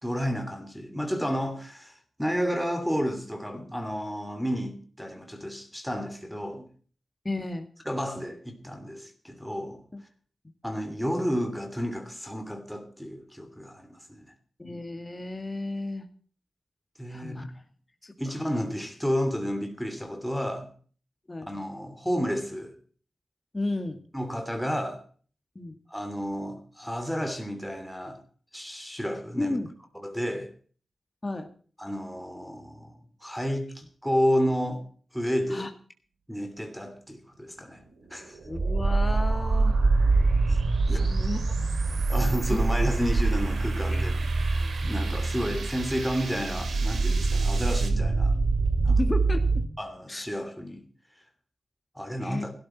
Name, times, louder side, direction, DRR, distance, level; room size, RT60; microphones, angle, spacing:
voice 1, 0.0-6.7 7.8-9.8 10.6-14.3 17.0-17.5 18.2-20.7 21.5-22.8 24.1-25.0 25.9-28.2 28.5-29.6 29.9-30.5 31.8-34.8 35.1-35.7 36.3-37.8 38.1-38.4 40.5-40.6 40.9-41.1 42.1-44.3 44.8-48.4 48.8-49.0 49.8-50.8 51.9-52.5, equal, ahead, 2.9 m, -31 dB
voice 2, 7.2-7.7 9.9-10.0 14.6-16.0 17.1-17.6 18.0-18.1 18.4-18.6 21.3-21.5 23.5-24.0 25.6-25.7 29.4-29.7 31.2-31.5 35.5-35.7 38.4-39.8 41.1-41.4 42.5-42.6 43.9-44.0 48.9-49.6 50.1-50.2 52.2-52.4, left 2 dB, 25° left, 2.3 m, -33 dB
sound 1, 37.3-47.9, right 4 dB, 80° right, 3.6 m, -42 dB
sound 2, 38.5-49.7, right 3 dB, 55° right, 2.1 m, -25 dB
17.0 x 12.5 x 4.5 m
cardioid pair, 75°, 0 cm